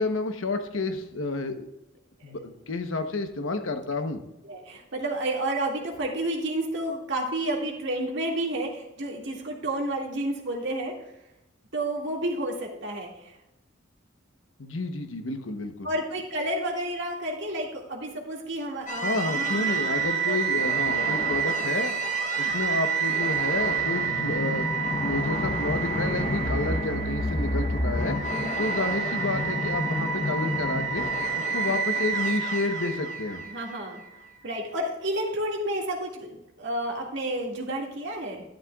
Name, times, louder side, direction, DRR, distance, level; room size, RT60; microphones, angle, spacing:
voice 1, 0.0-1.7 2.2-4.2 14.6-15.9 19.0-21.9 22.3-24.7 25.0-28.2 28.6-31.0 31.4-33.4, left 3 dB, 75° left, 7 dB, 1.0 m, -30 dB
voice 2, 4.5-10.9 11.7-13.3 15.8-19.7 20.3-20.4 20.9-21.2 28.3-28.7 33.4-34.0 34.4-38.4, right 1 dB, 65° right, -1 dB, 2.1 m, -31 dB
sound 1, 18.9-34.0, right 3 dB, 40° left, 0.9 m, -27 dB
12.0 x 10.5 x 2.4 m, 0.92 s
head